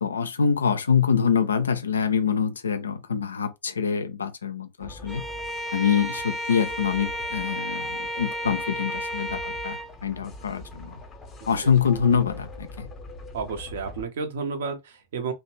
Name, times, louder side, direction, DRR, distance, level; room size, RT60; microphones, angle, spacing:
voice 1, 0.0-5.2 5.7-11.0 11.5-12.9, left 6 dB, 70° left, 0.4 m, -25 dB
sound 1, 4.8-14.1, left 2 dB, 20° left, 0.7 m, -43 dB
Bowed string instrument, 5.1-9.9, equal, ahead, 0.3 m, -32 dB
voice 2, 13.3-15.3, right 5 dB, 60° right, 0.6 m, -31 dB
2.8 x 2.1 x 3.0 m
figure-of-eight pair, 90°, 0 cm